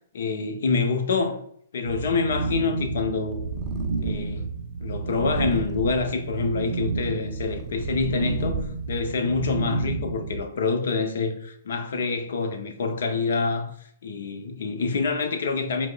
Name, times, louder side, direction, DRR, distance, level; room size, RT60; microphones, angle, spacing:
voice 1, 0.1-1.4 1.7-3.4 4.0-4.5 4.8-8.6 8.9-13.7 14.0-15.9, left 4 dB, 65° left, 0.5 m, -26 dB
sound 1, 1.8-10.4, right 3 dB, 70° right, 0.6 m, -30 dB
Purr, 3.3-4.4 5.1-6.2 6.9-9.0, right 3 dB, 20° right, 0.4 m, -37 dB
4.7 x 2.0 x 2.2 m
figure-of-eight pair, 120°, 0 cm